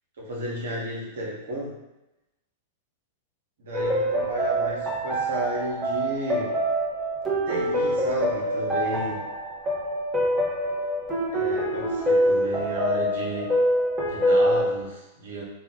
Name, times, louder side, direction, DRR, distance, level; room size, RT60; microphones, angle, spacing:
voice 1, 0.2-1.8 3.6-6.6 7.5-9.2 11.3-13.5 14.1-15.4, right 1 dB, 70° right, -3 dB, 1.2 m, -32 dB
sound 1, 3.7-14.9, equal, 15° right, 1.2 m, -25 dB
3.3 x 2.5 x 3.9 m, 0.93 s
hypercardioid pair, 105°, 0 cm